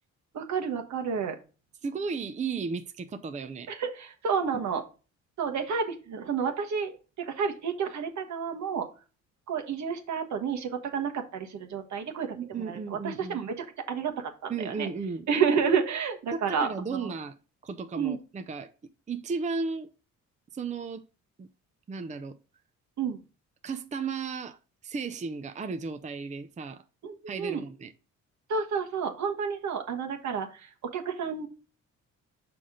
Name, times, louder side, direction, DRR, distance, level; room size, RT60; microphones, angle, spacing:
voice 1, 0.3-1.4 3.7-4.8 5.4-8.9 9.5-14.9 15.3-17.1 17.9-18.2 23.0-23.2 27.0-27.6 28.5-31.5, right 6 dB, 70° right, 1.4 m, -30 dB
voice 2, 1.8-3.7 4.5-4.6 12.4-13.4 14.5-15.3 16.3-17.3 17.6-18.7 19.1-19.9 20.5-21.0 21.4-21.5 21.9-22.3 23.6-26.8 27.3-27.9, right 4 dB, 25° right, 0.6 m, -34 dB
6.0 x 5.0 x 3.7 m
cardioid pair, 90°, 30 cm